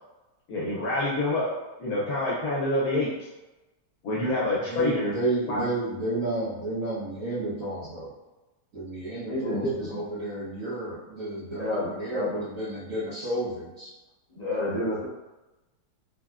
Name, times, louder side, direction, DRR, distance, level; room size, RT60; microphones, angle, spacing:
voice 1, 0.5-1.5 1.8-3.1 4.0-5.2 5.5-5.6, left 2 dB, 75° left, -6 dB, 1.1 m, -26 dB
voice 2, 4.7-8.1 8.7-13.9, right 2 dB, 60° right, -11 dB, 1.2 m, -32 dB
voice 3, 9.3-10.0 11.5-12.3 14.3-15.0, left 1 dB, 30° left, -10 dB, 0.9 m, -29 dB
3.4 x 2.0 x 2.3 m, 1.0 s
omnidirectional pair, 1.6 m